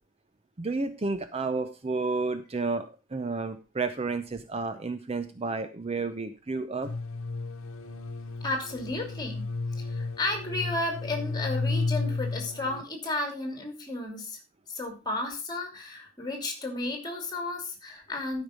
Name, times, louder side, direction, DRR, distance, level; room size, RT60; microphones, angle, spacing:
voice 1, 0.6-6.9, right 3 dB, 30° right, 10 dB, 0.6 m, -31 dB
sound 1, 6.8-12.8, left 3 dB, 85° left, 1.0 m, -33 dB
voice 2, 8.4-9.4 9.7-14.4 14.7-18.4, left 2 dB, 20° left, 3 dB, 2.7 m, -33 dB
12.5 x 5.4 x 5.0 m, 0.31 s
head